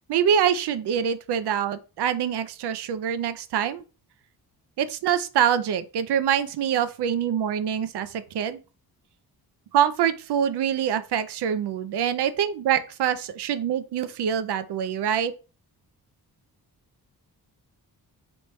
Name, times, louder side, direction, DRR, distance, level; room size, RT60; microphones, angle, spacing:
voice 1, 0.1-3.8 4.8-8.6 9.7-15.3, right 9 dB, 90° right, 0.6 m, -25 dB
4.3 x 3.2 x 3.0 m
wide cardioid pair, 135°, 39 cm